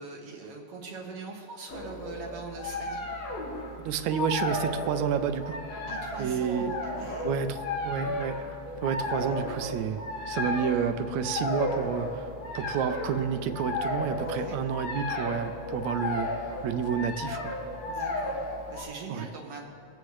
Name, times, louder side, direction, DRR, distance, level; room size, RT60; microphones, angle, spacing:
voice 1, 0.0-3.0 5.9-7.4 9.0-9.4 14.2-14.6 17.9-19.6, right 4 dB, 60° right, 0 dB, 2.1 m, -42 dB
sound 1, 1.7-18.8, left 2 dB, 65° left, 2.5 m, -34 dB
voice 2, 3.9-5.6 6.2-6.7 7.2-8.4 8.8-12.3 12.6-16.3 16.6-17.6 19.1-19.3, right 8 dB, 80° right, 9 dB, 1.9 m, -30 dB
23.0 x 8.8 x 3.2 m, 2.7 s
omnidirectional pair, 3.3 m